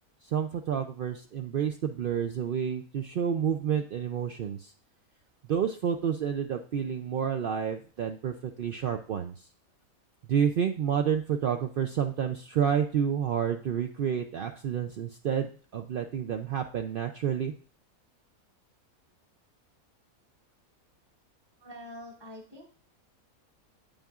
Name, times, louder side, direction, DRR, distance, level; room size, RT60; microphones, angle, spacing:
voice 1, 0.2-4.7 5.5-9.4 10.3-17.5, right 8 dB, 75° right, 5 dB, 0.5 m, -29 dB
voice 2, 21.6-22.7, equal, 20° right, -2 dB, 1.0 m, -45 dB
8.9 x 8.9 x 2.4 m, 0.41 s
omnidirectional pair, 1.5 m